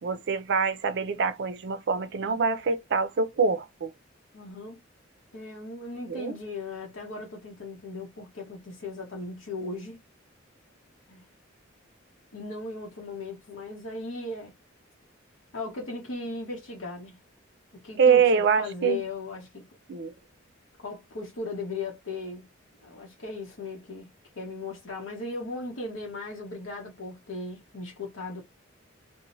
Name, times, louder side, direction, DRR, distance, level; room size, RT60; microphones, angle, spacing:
voice 1, 0.0-3.9 6.1-6.3 18.0-19.0 19.9-20.1, right 5 dB, 60° right, 0.4 m, -24 dB
voice 2, 4.3-4.8 5.3-10.0 11.1-11.2 12.3-14.5 15.5-17.2 17.8-19.7 20.8-22.5 22.8-24.1 24.4-28.4, left 3 dB, 85° left, 0.8 m, -37 dB
2.6 x 2.1 x 2.9 m
head